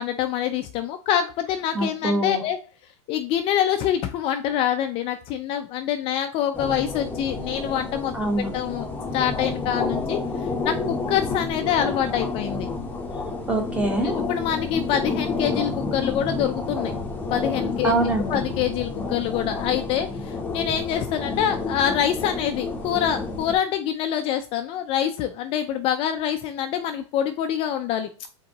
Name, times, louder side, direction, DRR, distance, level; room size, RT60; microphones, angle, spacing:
voice 1, 0.0-2.6 3.1-8.1 8.5-8.9 9.1-10.2 10.6-12.7 14.0-16.9 17.3-17.9 18.3-28.3, left 10 dB, 35° left, 7 dB, 0.4 m, -25 dB
voice 2, 1.7-2.4 8.1-8.5 13.5-14.1 17.8-18.4, right 2 dB, 10° right, 2 dB, 1.2 m, -24 dB
sound 1, 6.5-23.5, left 3 dB, 10° left, 0.8 m, -30 dB
5.0 x 3.7 x 2.9 m, 0.37 s
supercardioid pair, 130°, 15 cm